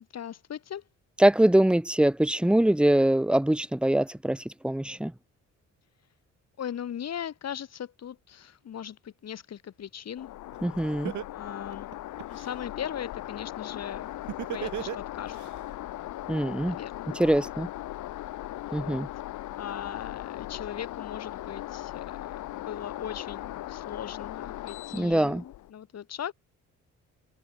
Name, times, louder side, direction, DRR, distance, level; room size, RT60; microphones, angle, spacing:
voice 1, 0.1-0.8 6.6-10.3 11.3-11.9 12.3-14.1 14.5-15.4 16.7-17.2 18.6-19.0 19.6-26.3, left 9 dB, 60° left, 3.5 m, -39 dB
voice 2, 1.2-5.1 10.6-11.1 16.3-16.8 17.2-17.7 18.7-19.1 24.9-25.4, right 1 dB, 5° right, 0.8 m, -23 dB
sound 1, 10.2-25.7, left 15 dB, 80° left, 1.2 m, -39 dB
Laughter, 10.5-10.6 11.0-12.5 14.3-15.5, right 13 dB, 75° right, 1.6 m, -34 dB
open air
cardioid pair, 90°, 30 cm